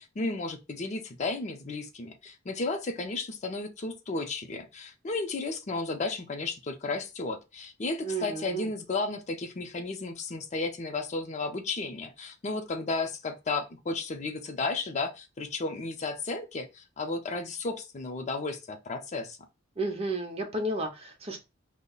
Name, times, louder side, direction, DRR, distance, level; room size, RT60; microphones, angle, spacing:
voice 1, 0.0-19.4, left 3 dB, 35° left, 0.5 m, -33 dB
voice 2, 8.0-8.7 19.8-21.4, right 2 dB, 30° right, 0.7 m, -32 dB
5.1 x 2.1 x 2.3 m
head